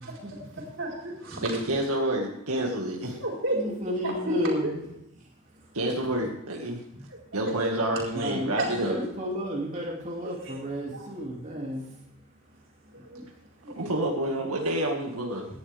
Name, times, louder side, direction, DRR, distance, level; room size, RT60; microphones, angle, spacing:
voice 1, 0.0-1.6 3.2-3.6 3.9-4.7 7.1-7.2 7.6-7.7 8.2-8.3 8.6-8.7 8.9-9.0 10.2-10.6 10.9-11.0 13.1-13.2 13.6-14.0, right 1 dB, 60° right, -2 dB, 4.7 m, -33 dB
voice 2, 1.4-3.2 5.7-6.8 7.3-9.0 13.7-15.5, right 1 dB, 90° right, 0 dB, 2.1 m, -28 dB
voice 3, 3.5-4.8 8.1-11.9, equal, 35° right, -3 dB, 2.6 m, -32 dB
17.5 x 11.5 x 3.6 m, 0.84 s
head